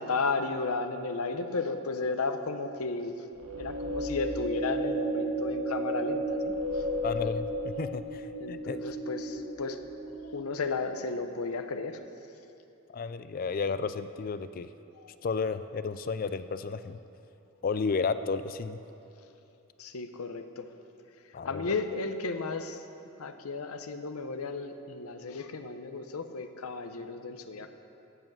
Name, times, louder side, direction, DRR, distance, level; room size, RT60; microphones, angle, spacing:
voice 1, 0.0-3.3 3.5-6.9 7.8-7.9 8.4-9.8 10.2-12.0 15.0-15.1 19.8-20.7 21.4-22.8 23.2-27.7, left 3 dB, 85° left, 8 dB, 0.7 m, -34 dB
sound 1, 3.4-10.7, right 1 dB, 70° right, 1.2 m, -33 dB
voice 2, 7.0-8.9 12.9-14.7 15.2-17.0 17.6-18.8 21.3-21.8, left 4 dB, 40° left, 12 dB, 0.3 m, -32 dB
14.5 x 7.8 x 6.1 m, 2.8 s
head